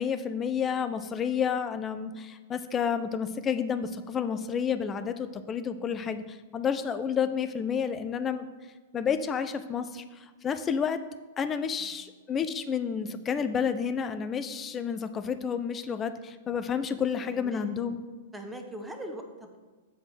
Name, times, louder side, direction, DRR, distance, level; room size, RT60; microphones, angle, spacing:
voice 1, 0.0-8.4 8.9-11.0 11.4-18.0, left 7 dB, 20° left, 10 dB, 0.5 m, -30 dB
voice 2, 17.2-17.6 18.3-19.6, right 1 dB, 5° right, 4 dB, 1.0 m, -41 dB
7.8 x 3.9 x 6.3 m, 1.4 s
figure-of-eight pair, 105°, 0 cm